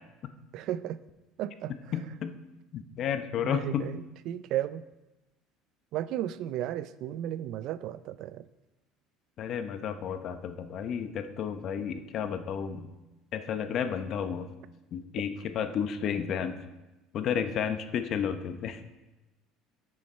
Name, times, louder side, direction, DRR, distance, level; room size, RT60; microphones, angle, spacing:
voice 1, 0.5-1.0 1.4-1.7 3.4-4.8 5.9-8.4, right 12 dB, 60° right, 15 dB, 0.3 m, -34 dB
voice 2, 1.9-2.3 2.7-3.9 9.4-12.9 13.3-14.5 14.9-16.6 17.1-18.8, left 8 dB, 50° left, 9 dB, 0.7 m, -32 dB
9.8 x 6.3 x 4.3 m, 1.0 s
cardioid pair, 120°, 0 cm